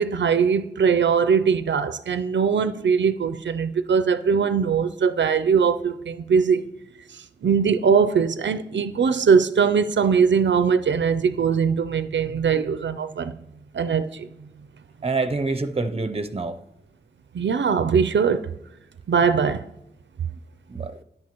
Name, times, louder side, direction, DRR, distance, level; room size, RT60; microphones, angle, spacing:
voice 1, 0.0-6.7 7.1-13.3 13.7-14.3 17.3-18.5 19.1-19.6, right 6 dB, 85° right, 0.4 m, -21 dB
voice 2, 15.0-16.6 20.7-21.0, right 3 dB, 35° right, 0.6 m, -26 dB
13.5 x 10.5 x 2.9 m
wide cardioid pair, 60°, 18 cm